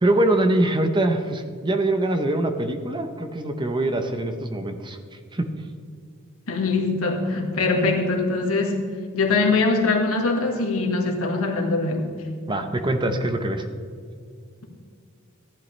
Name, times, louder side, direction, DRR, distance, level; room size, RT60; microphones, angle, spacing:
voice 1, 0.0-5.4 12.5-13.7, right 1 dB, 20° right, 7 dB, 0.8 m, -23 dB
voice 2, 6.5-8.8 9.1-12.1, left 3 dB, 75° left, 1 dB, 1.8 m, -22 dB
14.5 x 10.5 x 3.3 m, 2.2 s
head